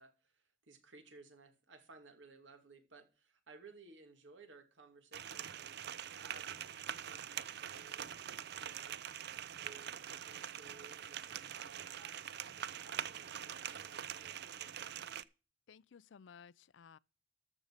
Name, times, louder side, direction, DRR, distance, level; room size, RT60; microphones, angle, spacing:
voice 1, 0.0-8.2 8.6-9.0 9.6-14.9, right 3 dB, 85° right, 2.3 m, -59 dB
sound 1, 5.1-15.2, right 9 dB, 60° right, 0.6 m, -44 dB
voice 2, 15.7-17.0, left 6 dB, 75° left, 0.4 m, -57 dB
13.5 x 5.4 x 6.5 m
head